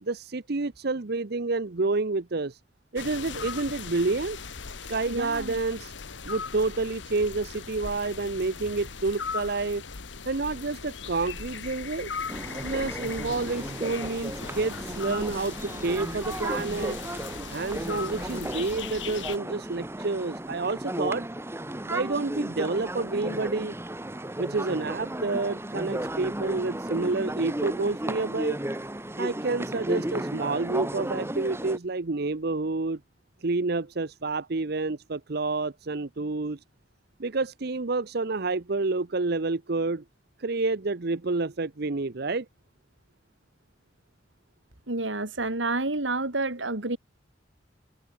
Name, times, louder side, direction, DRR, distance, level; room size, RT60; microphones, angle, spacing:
voice 1, 0.0-2.6 2.9-4.4 4.9-5.9 6.2-9.8 10.2-12.1 12.6-17.0 17.5-21.3 21.9-23.7 24.4-28.6 29.2-33.0 33.4-36.6 37.2-40.0 40.4-42.5, right 3 dB, 60° right, 0.8 m, -29 dB
sound 1, 3.0-19.4, left 5 dB, 75° left, 1.4 m, -39 dB
voice 2, 5.1-5.6 44.9-47.0, right 2 dB, 85° right, 3.2 m, -29 dB
sound 2, 12.3-31.8, right 1 dB, 15° right, 1.5 m, -34 dB
head